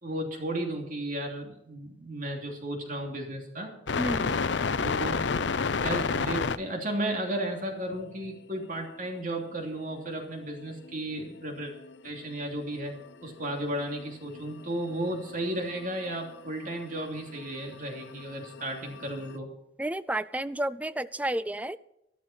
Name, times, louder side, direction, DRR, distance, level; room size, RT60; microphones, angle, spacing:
voice 1, 0.0-3.7 4.8-5.2 5.8-11.7 12.0-12.9 13.2-19.5, right 1 dB, 45° right, 2 dB, 2.9 m, -34 dB
sound 1, 3.9-6.6 10.1-10.2 10.4-10.5 10.7-11.9 12.2-19.4, left 5 dB, 65° left, 0.6 m, -31 dB
voice 2, 4.0-4.4 19.8-21.8, right 1 dB, 10° right, 15 dB, 0.4 m, -31 dB
13.5 x 13.5 x 4.4 m, 0.83 s
head